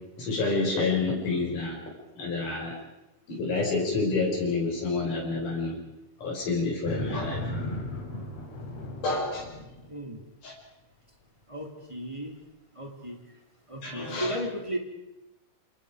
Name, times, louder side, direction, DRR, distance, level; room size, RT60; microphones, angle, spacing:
voice 1, 0.2-1.8 2.2-2.7 3.3-5.8 6.2-7.5 9.0-9.5 10.4-10.5 13.8-14.3, left 3 dB, 85° left, -3 dB, 7.1 m, -28 dB
sound 1, 6.8-9.9, left 1 dB, 55° left, 4.2 m, -35 dB
voice 2, 9.9-10.2 11.5-12.3 12.7-13.2 13.7-14.8, equal, 10° right, 2 dB, 3.0 m, -34 dB
27.5 x 27.0 x 5.1 m, 0.98 s
omnidirectional pair, 3.5 m